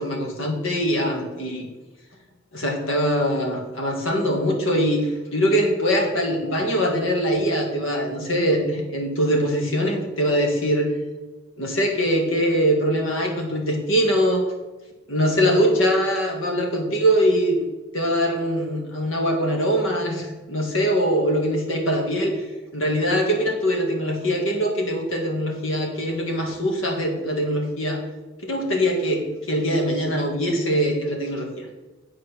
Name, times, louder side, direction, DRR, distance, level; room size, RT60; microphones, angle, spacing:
voice 1, 0.0-1.7 2.5-10.9 11.6-14.4 15.1-17.6 17.9-22.4 22.7-28.0 28.4-31.7, equal, 75° left, 2 dB, 1.9 m, -22 dB
9.3 x 5.0 x 6.1 m, 1.2 s
head